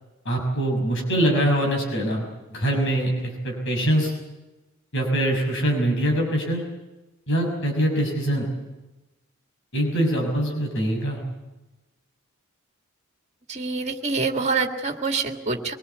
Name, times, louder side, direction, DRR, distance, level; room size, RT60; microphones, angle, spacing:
voice 1, 0.2-4.1 4.9-6.6 7.3-8.5 9.7-11.2, right 1 dB, 60° left, 1 dB, 6.2 m, -23 dB
voice 2, 13.5-15.7, right 4 dB, 30° right, 5 dB, 2.0 m, -26 dB
23.5 x 20.5 x 8.3 m, 1.1 s
head